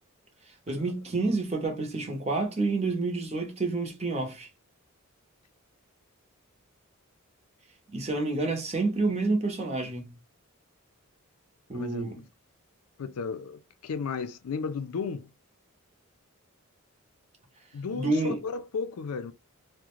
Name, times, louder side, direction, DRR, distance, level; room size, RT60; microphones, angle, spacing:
voice 1, 0.7-4.5 7.9-10.2 11.7-12.2 17.9-18.4, right 3 dB, 30° right, 0.6 m, -29 dB
voice 2, 11.7-12.3 13.0-15.3 17.7-19.3, left 5 dB, 90° left, 0.4 m, -34 dB
2.4 x 2.1 x 2.9 m
head